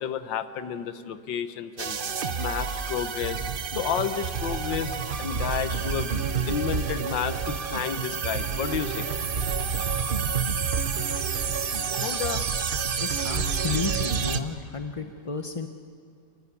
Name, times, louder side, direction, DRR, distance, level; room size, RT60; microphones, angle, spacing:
voice 1, 0.0-2.0 2.4-3.4 3.7-6.1 6.5-9.1 12.0-12.4, left 8 dB, 80° left, 11 dB, 1.7 m, -31 dB
sound 1, 1.8-14.4, right 6 dB, 45° right, 0.7 m, -29 dB
voice 2, 13.0-15.7, left 4 dB, 35° left, 6 dB, 0.5 m, -32 dB
28.0 x 21.0 x 8.4 m, 2.2 s
omnidirectional pair, 2.0 m